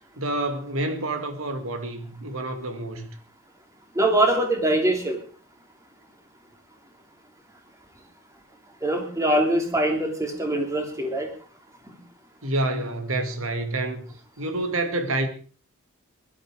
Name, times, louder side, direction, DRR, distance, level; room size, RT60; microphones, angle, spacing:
voice 1, 0.2-3.1 12.4-14.1 14.4-15.3, right 2 dB, 75° right, 2.3 m, -28 dB
voice 2, 3.9-5.2 8.8-11.3 11.8-12.0, right 1 dB, 15° right, 3.1 m, -23 dB
19.0 x 12.5 x 4.9 m
head